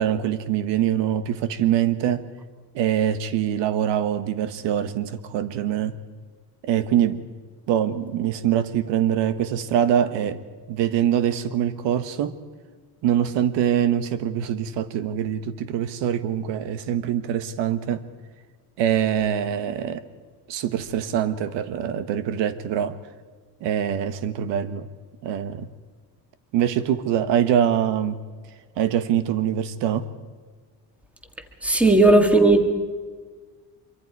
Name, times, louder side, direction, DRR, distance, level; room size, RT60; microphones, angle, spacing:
voice 1, 0.0-2.2 2.7-6.0 6.6-7.2 7.7-10.4 10.7-12.4 13.0-18.0 18.8-20.0 20.5-23.0 23.6-24.9 25.2-25.7 26.5-28.2 28.8-30.1, right 10 dB, 85° right, 12 dB, 1.4 m, -24 dB
voice 2, 31.6-32.7, right 2 dB, 5° right, 6 dB, 1.7 m, -15 dB
25.5 x 24.0 x 4.7 m, 1.5 s
cardioid pair, 175°, 42 cm